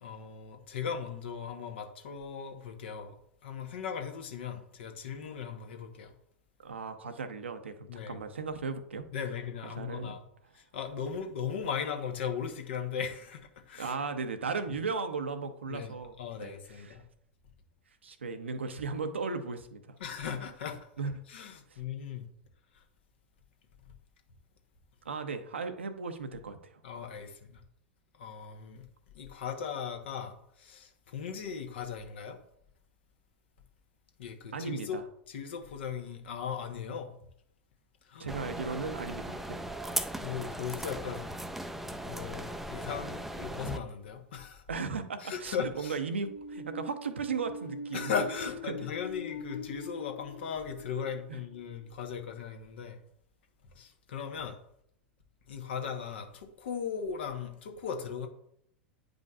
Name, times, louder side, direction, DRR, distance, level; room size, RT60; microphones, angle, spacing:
voice 1, 0.0-3.2 3.4-6.1 7.9-8.2 9.1-10.2 10.5-13.9 15.7-17.0 20.0-20.8 21.3-22.2 26.8-27.6 28.2-28.9 29.1-32.4 34.2-35.0 35.3-37.1 38.1-38.3 40.2-41.3 41.9-44.6 45.2-46.0 47.9-53.0 53.7-54.6 55.5-58.3, left 7 dB, 70° left, 1.2 m, -38 dB
voice 2, 6.6-9.1 9.6-10.1 13.8-17.0 18.0-20.0 21.0-21.2 21.7-21.8 25.0-26.8 34.5-35.0 38.2-39.6 44.7-48.1 48.7-48.9 51.3-51.4, right 4 dB, 85° right, 0.8 m, -36 dB
sound 1, 38.3-43.8, right 1 dB, 5° right, 0.5 m, -38 dB
sound 2, 46.2-51.9, left 2 dB, 90° left, 1.0 m, -43 dB
9.6 x 5.1 x 2.4 m
hypercardioid pair, 95°, 6 cm